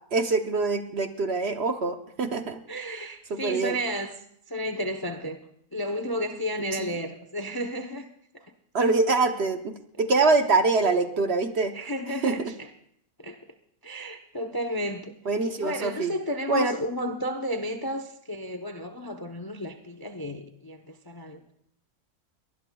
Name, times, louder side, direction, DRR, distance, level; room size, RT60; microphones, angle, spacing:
voice 1, 0.1-2.6 3.3-3.8 6.7-6.9 8.7-11.7 12.2-12.5 15.3-16.1 16.5-16.7, right 3 dB, 50° right, 1.0 m, -24 dB
voice 2, 2.7-4.1 4.5-5.4 5.7-8.1 8.3-8.4 11.7-12.7 13.2-13.4 13.8-15.1 15.6-21.5, equal, 25° left, 0.5 m, -32 dB
23.0 x 19.5 x 2.3 m
omnidirectional pair, 1.6 m